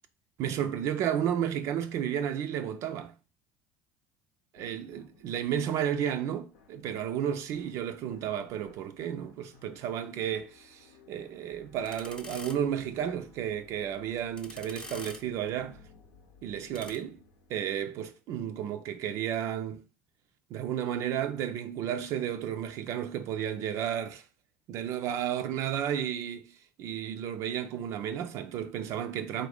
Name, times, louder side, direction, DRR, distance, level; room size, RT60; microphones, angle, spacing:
voice 1, 0.4-3.1 4.5-15.8 16.4-17.2 17.5-19.9 20.5-24.3 24.7-29.5, right 9 dB, 60° right, 0.3 m, -32 dB
sound 1, 4.6-18.2, left 5 dB, 75° left, 0.7 m, -59 dB
sound 2, 11.5-17.0, left 2 dB, 15° left, 0.7 m, -49 dB
4.0 x 2.6 x 3.3 m
hypercardioid pair, 65°, 6 cm